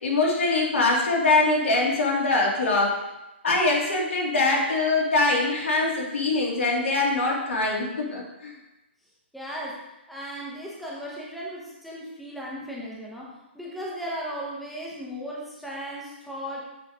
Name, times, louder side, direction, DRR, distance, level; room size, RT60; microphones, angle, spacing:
voice 1, 0.0-3.0 3.4-8.5, left 3 dB, 85° left, -2 dB, 2.3 m, -23 dB
voice 2, 9.3-9.8 10.1-16.6, equal, ahead, -5 dB, 0.7 m, -36 dB
7.5 x 5.3 x 3.4 m, 0.94 s
hypercardioid pair, 170°, 7 cm